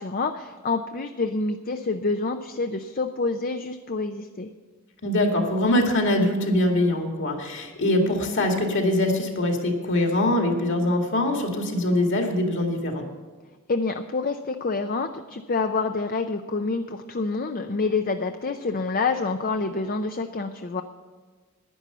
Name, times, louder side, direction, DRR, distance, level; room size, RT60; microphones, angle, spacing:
voice 1, 0.0-4.5 13.7-20.8, left 3 dB, 40° left, 7 dB, 0.6 m, -27 dB
voice 2, 5.0-13.1, left 1 dB, 55° left, 3 dB, 2.3 m, -23 dB
11.0 x 10.5 x 6.9 m, 1.4 s
head